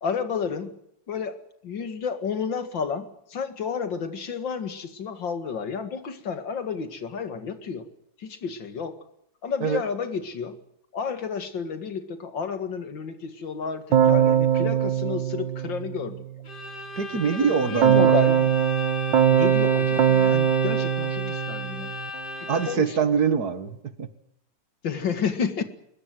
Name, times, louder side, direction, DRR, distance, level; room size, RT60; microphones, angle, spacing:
voice 1, 0.0-0.7 1.1-1.4 1.6-7.9 8.2-9.0 9.4-10.6 10.9-16.2 17.1-18.5 19.3-21.9 22.7-23.0 24.8-25.6, left 6 dB, 90° left, 2.7 m, -31 dB
Keyboard (musical), 13.9-16.2 17.8-22.1, right 9 dB, 90° right, 1.9 m, -21 dB
Bowed string instrument, 16.5-23.0, left 3 dB, 65° left, 3.1 m, -34 dB
voice 2, 17.0-18.2 22.5-24.1, right 6 dB, 60° right, 2.1 m, -24 dB
23.0 x 21.0 x 7.9 m
omnidirectional pair, 2.0 m